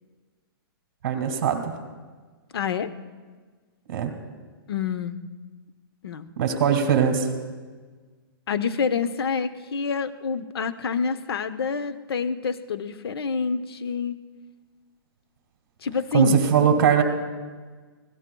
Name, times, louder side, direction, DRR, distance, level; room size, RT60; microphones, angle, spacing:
voice 1, 1.0-1.7 3.9-4.1 6.4-7.3 16.1-17.0, right 7 dB, 40° right, 3 dB, 1.8 m, -20 dB
voice 2, 2.5-2.9 4.7-5.2 6.0-6.3 8.5-14.2 15.8-16.4, left 5 dB, 85° left, 13 dB, 0.8 m, -27 dB
25.0 x 16.5 x 2.3 m, 1.4 s
hypercardioid pair, 175°, 13 cm